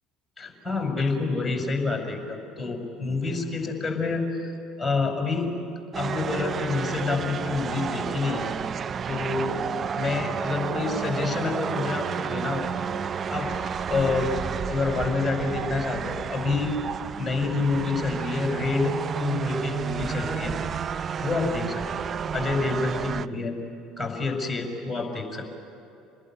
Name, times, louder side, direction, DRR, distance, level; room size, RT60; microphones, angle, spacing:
voice 1, 0.4-4.5 4.8-5.5 5.9-8.5 9.0-9.6 9.9-12.7 13.3-13.5 13.9-14.3 14.7-16.7 17.2-20.6 21.2-22.1 22.3-23.6 24.0-25.5, left 3 dB, 15° left, 3 dB, 5.4 m, -28 dB
sound 1, 5.9-23.3, right 7 dB, 35° right, 0.5 m, -31 dB
27.0 x 20.5 x 9.9 m, 2.7 s
figure-of-eight pair, 60°, 0 cm